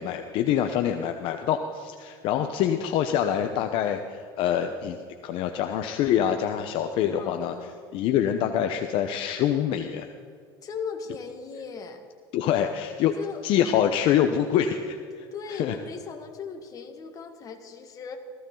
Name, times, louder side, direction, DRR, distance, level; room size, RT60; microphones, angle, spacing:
voice 1, 0.0-5.0 5.2-7.5 7.9-10.1 12.3-13.2 13.4-15.3 15.6-15.8, left 9 dB, 55° left, 6 dB, 0.9 m, -25 dB
voice 2, 2.6-2.9 7.1-7.8 10.6-12.0 13.2-13.5 15.3-18.2, left 5 dB, 35° left, 4 dB, 1.9 m, -38 dB
18.5 x 15.0 x 3.9 m, 2.2 s
supercardioid pair, 130°, 11 cm